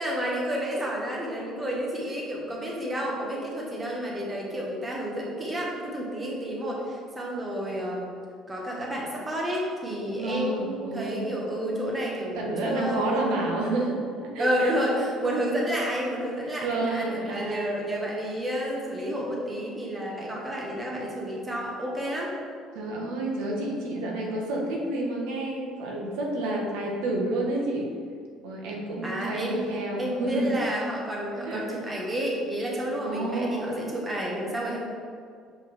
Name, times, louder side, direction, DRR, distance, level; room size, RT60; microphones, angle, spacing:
voice 1, 0.0-8.1 8.5-13.5 14.4-22.3 29.0-34.8, equal, 15° right, -3 dB, 1.4 m, -30 dB
voice 2, 10.2-11.3 12.3-14.7 16.6-17.7 22.7-27.9 28.4-30.5 31.4-31.8 33.1-33.8, right 2 dB, 90° right, -1 dB, 1.3 m, -30 dB
7.3 x 5.3 x 3.6 m, 2.1 s
cardioid pair, 140°, 0 cm